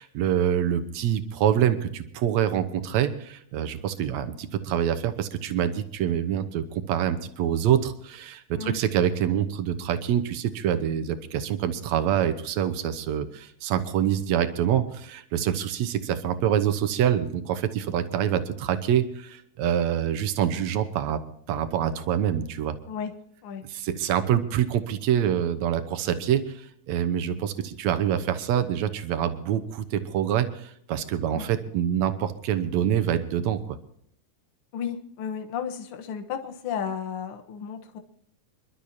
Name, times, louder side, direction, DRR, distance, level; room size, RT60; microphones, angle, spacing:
voice 1, 0.0-21.2 21.5-22.8 23.7-33.8, right 10 dB, 70° right, 9 dB, 2.2 m, -26 dB
voice 2, 34.7-38.0, left 7 dB, 55° left, 5 dB, 1.8 m, -33 dB
27.5 x 12.0 x 2.8 m, 0.64 s
omnidirectional pair, 3.5 m